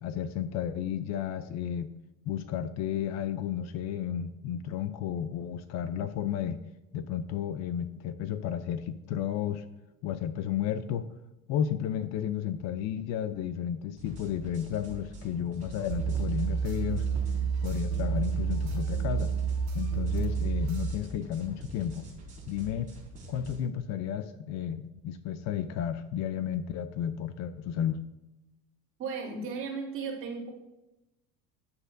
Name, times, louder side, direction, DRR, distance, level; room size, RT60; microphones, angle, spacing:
voice 1, 0.0-1.9 2.3-6.6 6.9-9.6 10.0-11.1 11.5-17.1 17.6-19.3 19.7-22.1 22.5-22.9 23.3-28.0, left 9 dB, 50° left, 12 dB, 0.5 m, -32 dB
sound 1, 14.0-23.5, right 1 dB, 20° right, 3.4 m, -45 dB
sound 2, 15.9-20.9, right 6 dB, 70° right, 2.0 m, -29 dB
voice 2, 29.0-30.5, right 5 dB, 35° right, -5 dB, 3.3 m, -35 dB
13.0 x 9.7 x 2.6 m, 0.96 s
cardioid pair, 165°, 35 cm